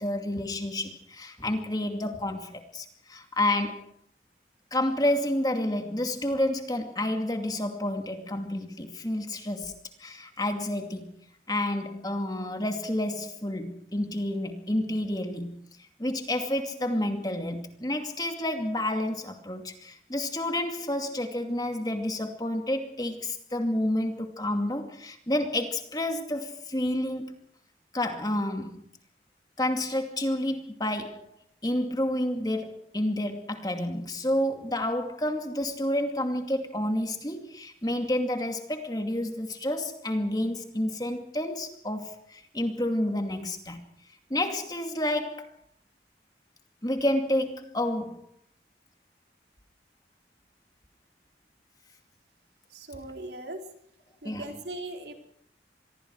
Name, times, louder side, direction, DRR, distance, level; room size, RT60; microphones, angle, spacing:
voice 1, 0.0-3.8 4.7-11.1 11.5-15.5 16.0-27.4 27.9-28.8 29.6-31.3 31.6-43.8 44.3-45.5 46.8-48.2 54.2-54.6, left 1 dB, 20° left, 5 dB, 2.4 m, -29 dB
voice 2, 52.7-53.6 54.2-55.1, right 1 dB, 70° right, 3 dB, 4.1 m, -39 dB
26.5 x 22.5 x 4.8 m, 0.62 s
head